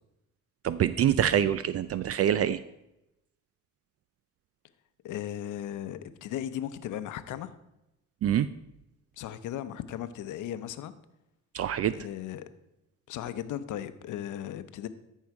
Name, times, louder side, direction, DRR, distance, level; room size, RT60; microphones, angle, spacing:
voice 1, 0.6-2.6 8.2-8.5 11.5-11.9, right 10 dB, 50° right, 14 dB, 0.4 m, -25 dB
voice 2, 5.0-7.5 9.2-10.9 11.9-12.5 13.1-14.9, left 11 dB, 80° left, 12 dB, 0.8 m, -36 dB
13.5 x 5.6 x 4.7 m, 0.90 s
cardioid pair, 90°, 30 cm